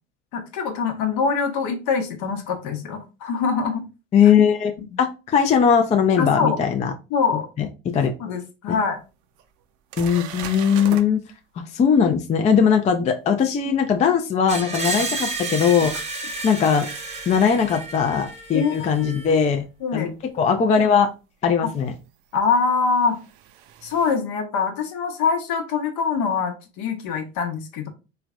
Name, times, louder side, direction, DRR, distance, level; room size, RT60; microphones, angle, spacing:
voice 1, 0.3-3.8 4.9-5.0 6.2-6.6 7.1-7.5 8.2-9.0 14.9-15.1 18.5-19.5 19.8-20.1 21.6-21.7 22.3-23.2 23.8-27.9, left 5 dB, 60° left, 5 dB, 0.9 m, -24 dB
voice 2, 4.1-4.7 5.0-6.9 7.6-8.1 8.7-8.8 10.0-11.2 11.7-15.9 16.4-16.9 17.3-19.6 19.9-20.1 20.3-21.1 21.4-21.9, left 7 dB, 20° left, 5 dB, 0.3 m, -19 dB
sound 1, 8.8-8.9 9.4-9.5 9.9-11.1 16.2-16.3 19.0-19.1 20.8-20.9 22.3-24.2, right 9 dB, 60° right, 0.5 m, -38 dB
Screech, 14.5-19.4, right 3 dB, 20° right, 0.7 m, -31 dB
3.2 x 2.1 x 2.4 m, 0.30 s
hypercardioid pair, 75°, 34 cm